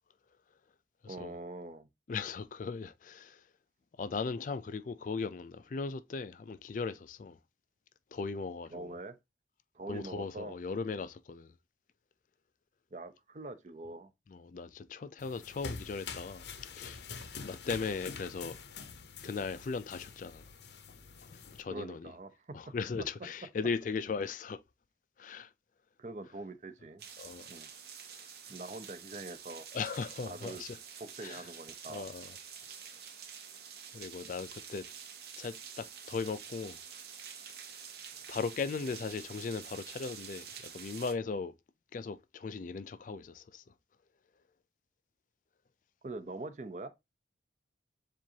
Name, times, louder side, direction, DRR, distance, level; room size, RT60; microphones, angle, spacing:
voice 1, 1.1-1.9 8.7-9.2 9.7-10.6 12.9-14.1 21.7-22.6 26.0-27.0 27.5-27.7 28.5-29.7 30.2-30.6 31.0-32.1 46.0-46.9, right 2 dB, 40° right, 0.6 m, -43 dB
voice 2, 2.1-3.4 4.0-7.4 8.1-8.9 9.9-11.5 14.3-16.4 16.7-17.0 17.4-18.6 19.2-20.4 21.3-22.1 22.5-24.6 25.2-25.5 27.2-27.5 29.7-30.8 31.2-31.4 31.9-32.4 33.9-34.9 35.4-36.8 38.3-41.5 41.9-43.6, left 4 dB, 45° left, 0.3 m, -38 dB
sound 1, 15.2-21.6, left 5 dB, 70° left, 0.7 m, -46 dB
sound 2, 27.0-41.1, right 7 dB, 60° right, 0.9 m, -48 dB
7.4 x 2.5 x 2.7 m
head